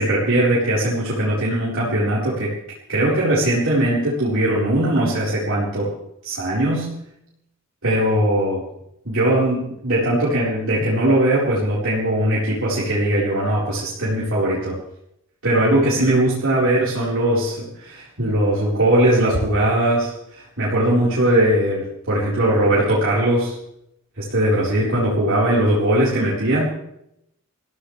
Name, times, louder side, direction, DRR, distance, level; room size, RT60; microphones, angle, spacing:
voice 1, 0.0-2.5 2.9-5.9 6.2-6.9 7.8-8.6 9.0-14.7 15.4-23.6 24.2-26.7, right 1 dB, 70° right, -8 dB, 4.5 m, -20 dB
24.5 x 16.0 x 3.4 m, 0.79 s
head